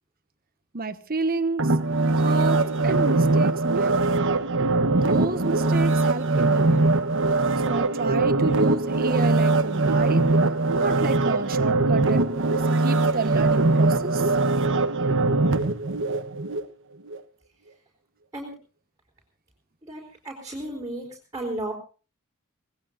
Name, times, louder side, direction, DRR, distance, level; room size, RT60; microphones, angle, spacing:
voice 1, 0.7-1.7 2.2-4.3 4.9-7.0 7.6-10.3 10.8-12.2 12.8-14.3, right 3 dB, 40° right, 11 dB, 1.2 m, -30 dB
sound 1, 1.6-16.6 17.1-17.2, right 2 dB, 60° right, 1.1 m, -22 dB
voice 2, 19.8-21.1 21.3-21.7, right 1 dB, 15° right, -2 dB, 4.2 m, -33 dB
24.5 x 19.0 x 2.6 m, 0.37 s
head